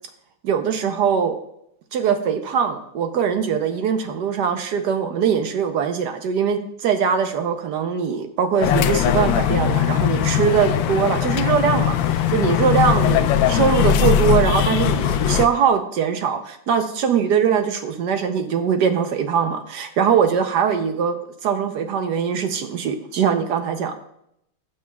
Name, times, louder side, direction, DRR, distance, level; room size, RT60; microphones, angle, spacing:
voice 1, 0.4-1.4 1.9-21.2 21.4-23.9, right 7 dB, 65° right, 7 dB, 1.1 m, -21 dB
sound 1, 8.6-15.5, left 10 dB, 75° left, 1.2 m, -20 dB
15.0 x 6.3 x 2.3 m, 0.75 s
omnidirectional pair, 2.3 m